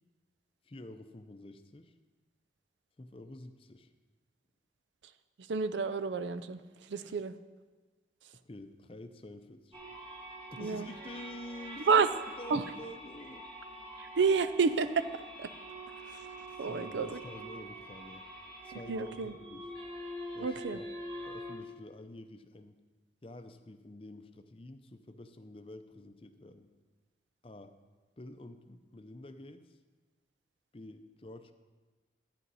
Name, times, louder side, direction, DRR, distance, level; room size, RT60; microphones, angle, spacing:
voice 1, 0.7-1.9 3.0-3.9 8.5-9.8 10.5-12.0 12.4-13.5 16.6-18.2 18.6-19.7 20.3-20.9 21.3-22.8 23.2-26.7 27.4-27.7 28.2-29.7 30.7-31.5, left 1 dB, 30° left, 8 dB, 0.5 m, -48 dB
voice 2, 5.5-7.3 10.6-10.9 11.9-12.1 12.5-12.6 14.0-15.1 15.4-15.5 16.1-16.3 16.6-17.2 18.7-19.3 20.4-20.8, right 5 dB, 85° right, 12 dB, 0.5 m, -30 dB
sound 1, 9.7-21.5, right 1 dB, 30° right, 2.0 m, -45 dB
11.0 x 10.0 x 4.1 m, 1.3 s
head